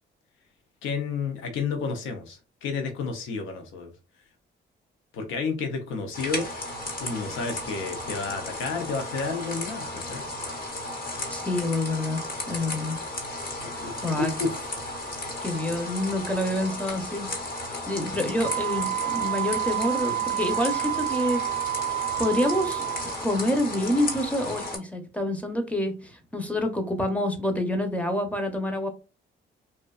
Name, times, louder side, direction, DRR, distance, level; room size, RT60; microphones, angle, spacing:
voice 1, 0.8-3.9 5.1-6.5 7.0-10.3 13.6-14.7, left 4 dB, 85° left, 0.6 m, -31 dB
sound 1, 6.1-24.8, left 2 dB, 50° left, 0.9 m, -34 dB
voice 2, 11.3-13.0 13.7-14.3 15.4-17.3 17.9-21.4 22.2-22.8 23.2-28.9, left 1 dB, 5° left, 0.6 m, -27 dB
Wind instrument woodwind instrument, 18.4-23.2, right 17 dB, 40° right, 0.4 m, -29 dB
2.5 x 2.2 x 2.3 m
cardioid pair, 90°, 20 cm